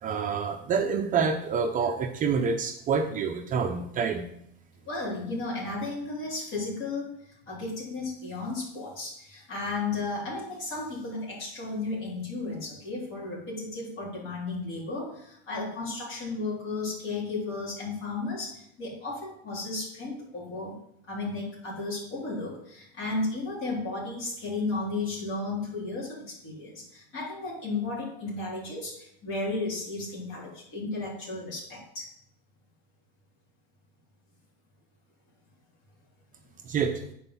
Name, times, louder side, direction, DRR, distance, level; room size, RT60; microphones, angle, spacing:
voice 1, 0.0-4.3 36.6-37.0, right 5 dB, 25° right, 4 dB, 0.5 m, -27 dB
voice 2, 4.8-20.8 21.0-32.1, left 3 dB, 45° left, -6 dB, 3.5 m, -34 dB
8.6 x 4.6 x 5.5 m, 0.73 s
cardioid pair, 155°, 32 cm